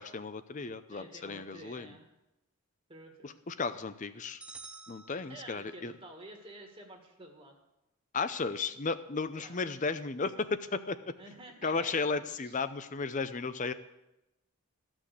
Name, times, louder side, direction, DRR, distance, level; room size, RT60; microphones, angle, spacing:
voice 1, 0.0-2.0 3.2-4.4 4.9-5.9 8.1-11.1 11.6-13.7, left 4 dB, 35° left, 12 dB, 0.6 m, -34 dB
voice 2, 0.9-2.1 2.9-3.4 5.3-7.6 9.3-9.6 11.2-12.6, right 1 dB, 25° right, 2 dB, 1.6 m, -50 dB
sound 1, 4.4-6.0, right 4 dB, 5° right, 0.8 m, -50 dB
14.5 x 6.2 x 8.3 m, 0.93 s
head